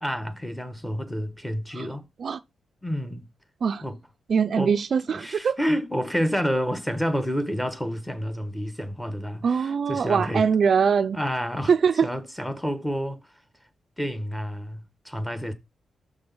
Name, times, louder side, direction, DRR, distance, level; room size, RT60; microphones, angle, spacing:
voice 1, 0.0-2.0 2.8-3.3 3.8-4.0 4.6-4.7 5.1-10.5 11.1-11.7 12.0-13.2 14.0-15.5, equal, 5° left, 1.1 m, -29 dB
voice 2, 4.3-5.6 9.4-11.2 11.7-12.1, right 6 dB, 50° right, 0.4 m, -22 dB
6.2 x 3.9 x 5.9 m
wide cardioid pair, 130°, 0 cm